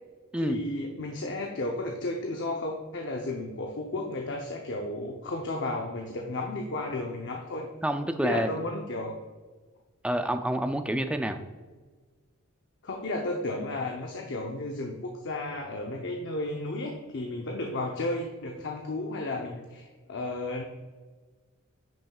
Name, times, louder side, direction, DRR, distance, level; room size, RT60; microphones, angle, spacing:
voice 1, 0.4-7.6 8.2-9.1 12.8-20.6, left 2 dB, 60° left, 1 dB, 0.7 m, -33 dB
voice 2, 7.8-8.6 10.0-11.4, right 1 dB, 5° right, 7 dB, 0.4 m, -28 dB
10.0 x 6.3 x 2.3 m, 1.4 s
head